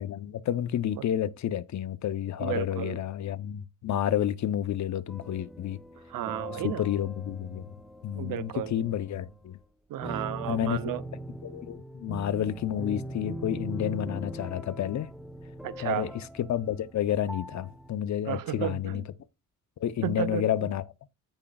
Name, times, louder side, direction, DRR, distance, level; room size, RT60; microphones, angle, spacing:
voice 1, 0.0-5.8 6.6-7.6 8.0-9.6 10.5-10.8 11.4-15.1 15.8-19.0 19.8-20.8, left 10 dB, 60° left, 0.7 m, -30 dB
voice 2, 2.4-3.0 6.1-6.9 8.1-8.8 9.9-11.0 15.6-16.1 18.3-19.0 20.0-20.4, right 12 dB, 80° right, 0.7 m, -33 dB
sound 1, 5.1-9.4 10.0-18.0, right 1 dB, ahead, 0.7 m, -41 dB
14.5 x 5.1 x 2.3 m
cardioid pair, 115°, 32 cm